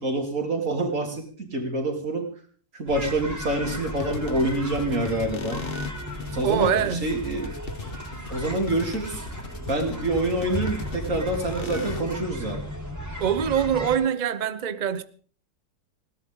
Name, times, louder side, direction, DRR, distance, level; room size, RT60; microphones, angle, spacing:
voice 1, 0.0-2.3 2.7-5.6 6.3-7.5 8.3-9.3 9.7-12.6, right 1 dB, 40° right, 3.4 m, -27 dB
sound 1, 2.9-14.0, equal, 10° right, 3.6 m, -35 dB
sound 2, 3.7-12.1, left 4 dB, 35° left, 1.1 m, -39 dB
voice 2, 6.4-7.0 13.2-15.0, right 8 dB, 70° right, 0.4 m, -24 dB
20.0 x 17.5 x 3.7 m
omnidirectional pair, 2.0 m